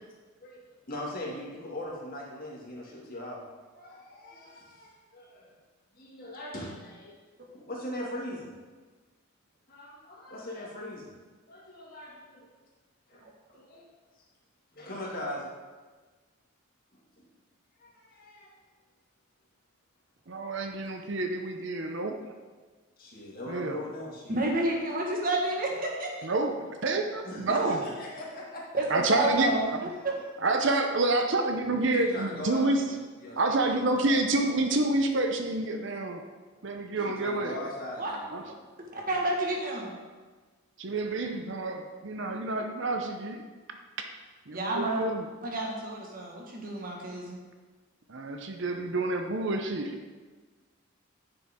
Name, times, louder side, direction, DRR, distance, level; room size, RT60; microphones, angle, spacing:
voice 1, 0.9-3.4 3.7-5.5 5.9-7.2 7.6-8.5 9.7-11.1 11.5-12.4 13.1-13.2 13.5-13.8 14.7-15.5 17.2-17.3 17.8-18.5 23.0-24.4 27.2-28.9 32.0-34.2 37.2-38.4, left 1 dB, 45° left, -4 dB, 2.2 m, -40 dB
voice 2, 20.3-22.2 23.5-23.8 26.2-27.8 28.9-29.8 30.4-32.8 33.4-36.2 36.6-37.6 38.3-38.4 40.8-43.4 44.5-45.3 48.1-50.0, right 2 dB, 60° right, 4 dB, 0.7 m, -28 dB
voice 3, 24.3-26.3 28.7-30.1 38.0-38.1 38.8-40.0 44.5-45.0 45.4-47.4, right 1 dB, 40° right, -1 dB, 1.6 m, -30 dB
10.5 x 6.8 x 3.7 m, 1.4 s
head